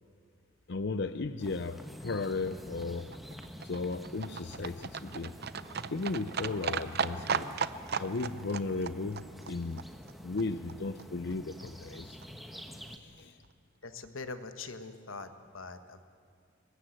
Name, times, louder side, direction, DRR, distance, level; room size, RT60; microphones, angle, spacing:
voice 1, 0.7-3.1 3.6-5.4 5.9-7.5 7.9-9.8 10.2-12.2 12.9-13.4, left 3 dB, 60° left, 11 dB, 0.6 m, -35 dB
sound 1, 1.4-13.0, equal, ahead, 1.2 m, -48 dB
Livestock farm animals working animals, 2.5-10.7 11.0-11.1 11.3-11.4 11.6-11.7 11.9-12.0 12.2-12.3 12.5-12.6 12.9-13.0 13.2-13.3, right 6 dB, 55° right, 0.7 m, -37 dB
voice 2, 13.8-16.0, left 4 dB, 90° left, 9 dB, 1.4 m, -43 dB
24.0 x 19.5 x 7.9 m, 2.3 s
head